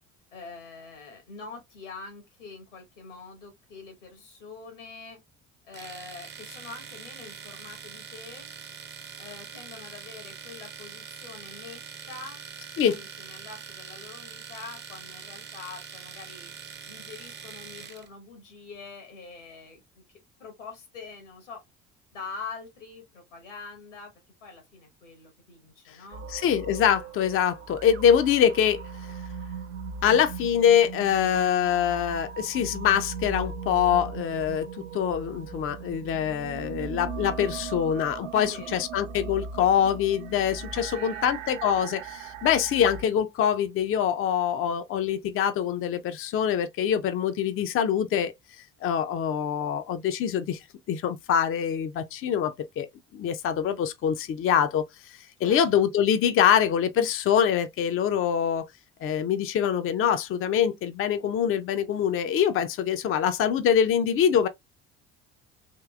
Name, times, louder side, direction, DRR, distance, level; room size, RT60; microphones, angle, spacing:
voice 1, 0.3-5.2 5.6-8.5 9.2-11.8 12.1-12.4 12.8-16.5 16.8-21.6 22.1-24.1 24.4-26.3 38.3-38.8 40.7-41.3 55.4-55.6, left 4 dB, 90° left, 1.5 m, -44 dB
Domestic sounds home sounds, 5.7-18.1, right 6 dB, 30° right, 0.8 m, -43 dB
sound 1, 26.1-43.0, right 5 dB, 80° right, 0.5 m, -39 dB
voice 2, 26.3-28.8 30.0-48.3 48.8-50.6 50.9-52.9 53.1-58.7 59.0-64.5, left 8 dB, 40° left, 0.5 m, -24 dB
3.6 x 2.7 x 2.3 m
hypercardioid pair, 60°, 36 cm